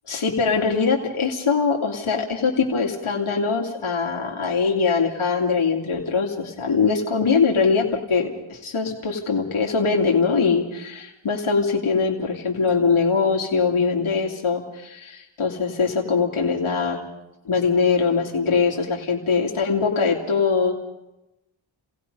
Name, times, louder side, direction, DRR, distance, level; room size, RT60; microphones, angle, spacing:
voice 1, 0.1-17.0 17.4-20.7, left 5 dB, 90° left, -1 dB, 2.6 m, -22 dB
30.0 x 17.0 x 5.4 m, 0.94 s
cardioid pair, 55°, 48 cm